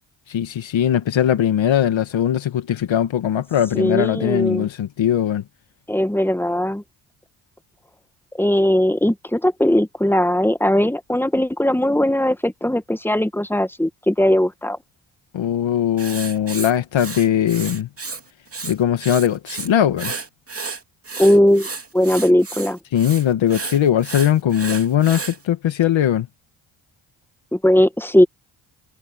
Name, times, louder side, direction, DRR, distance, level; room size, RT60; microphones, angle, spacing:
voice 1, 0.3-5.4 15.3-17.9 18.6-20.1 22.9-26.3, left 10 dB, 65° left, 2.0 m, -20 dB
voice 2, 3.7-4.7 5.9-6.8 8.4-14.8 21.2-21.7 21.9-22.8 27.5-28.3, left 1 dB, 5° left, 1.5 m, -18 dB
Writing, 16.0-18.2 18.5-19.7 20.0-25.4, right 4 dB, 30° right, 2.9 m, -32 dB
supercardioid pair, 60°, 49 cm